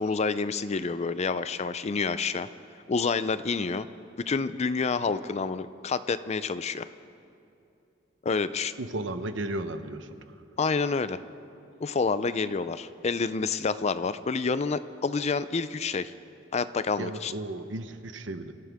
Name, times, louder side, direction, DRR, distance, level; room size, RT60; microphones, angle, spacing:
voice 1, 0.0-2.5 2.9-3.9 4.3-6.9 8.2-8.7 10.6-11.2 11.8-16.1 16.5-17.3, left 4 dB, 35° left, 14 dB, 0.5 m, -28 dB
voice 2, 8.8-10.3 17.0-18.5, right 1 dB, 80° right, 9 dB, 0.9 m, -34 dB
25.5 x 15.0 x 3.6 m, 2.6 s
head